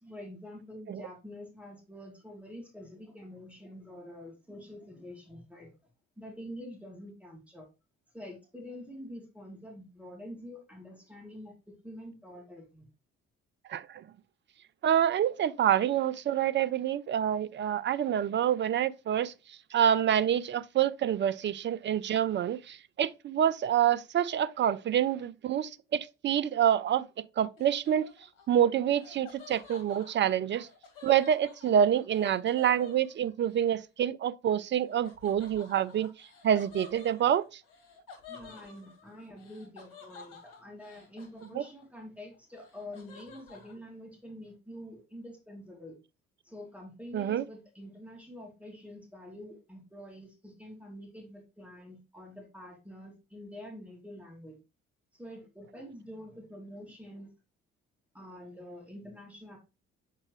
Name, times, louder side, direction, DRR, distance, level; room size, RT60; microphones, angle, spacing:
voice 1, 0.0-5.7 6.2-7.7 8.1-12.9 37.1-37.3 38.3-46.0 46.4-54.6 55.1-57.3 58.1-59.6, left 1 dB, 5° right, 3.0 m, -46 dB
voice 2, 13.7-14.0 14.8-19.3 19.7-28.1 28.5-30.7 31.0-36.1 36.4-37.5 41.6-41.7 47.1-47.4, right 9 dB, 30° right, 0.5 m, -27 dB
Laughter, 27.6-33.6 35.0-42.0 42.3-43.7, left 5 dB, 65° left, 1.8 m, -52 dB
7.5 x 4.5 x 3.1 m
figure-of-eight pair, 45°, 35 cm